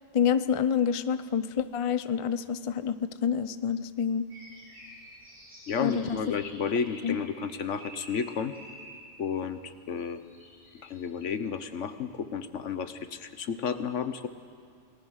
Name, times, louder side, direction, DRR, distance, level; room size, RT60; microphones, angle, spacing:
voice 1, 0.1-4.3 5.8-6.2 7.0-7.2, left 7 dB, 40° left, 13 dB, 0.5 m, -27 dB
sound 1, 4.3-9.2 10.0-11.0, equal, 65° right, 8.1 m, -50 dB
voice 2, 5.7-8.5 9.2-10.2 10.8-14.3, left 6 dB, 75° left, 11 dB, 1.4 m, -32 dB
28.5 x 19.0 x 6.5 m, 2.4 s
omnidirectional pair, 1.3 m